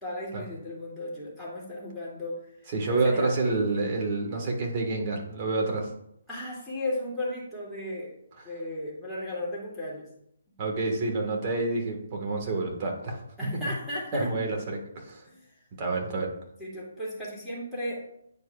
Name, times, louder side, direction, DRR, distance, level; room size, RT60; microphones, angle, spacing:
voice 1, 0.0-3.4 6.3-8.1 8.4-10.1 13.4-14.4 15.2-15.5 16.6-18.1, left 1 dB, ahead, -9 dB, 2.4 m, -35 dB
voice 2, 2.7-5.9 10.6-13.2 14.1-15.2 15.8-16.3, right 3 dB, 35° right, 0 dB, 1.6 m, -28 dB
9.2 x 4.7 x 2.4 m, 0.75 s
figure-of-eight pair, 140°, 0 cm